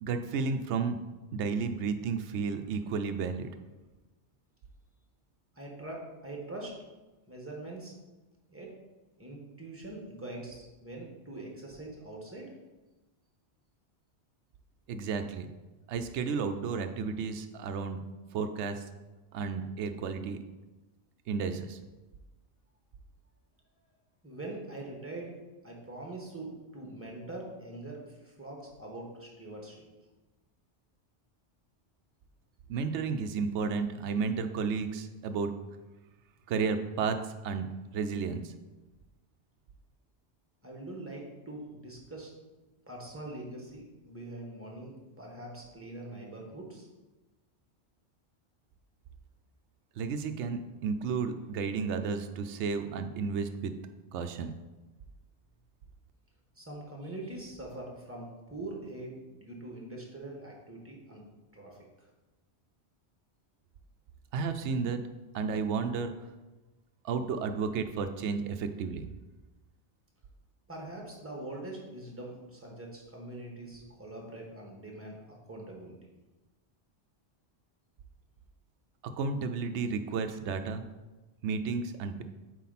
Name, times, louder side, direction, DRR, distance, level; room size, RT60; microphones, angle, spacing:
voice 1, 0.0-1.0 1.3-3.5 14.9-15.5 15.9-18.0 18.3-18.8 19.3-20.4 21.3-21.8 32.7-35.5 36.5-37.7 37.9-38.5 50.0-53.7 54.1-54.5 64.3-65.0 65.3-66.1 67.0-69.1 79.0-80.8 81.4-82.2, right 5 dB, 90° right, 8 dB, 0.9 m, -32 dB
voice 2, 5.5-6.7 7.3-7.9 8.5-8.8 9.2-12.5 24.2-25.4 25.6-29.8 40.6-42.3 42.9-46.9 56.5-61.3 61.5-61.8 70.7-75.9, right 2 dB, 10° right, -1 dB, 1.4 m, -43 dB
8.3 x 4.5 x 4.1 m, 1.1 s
omnidirectional pair, 1.1 m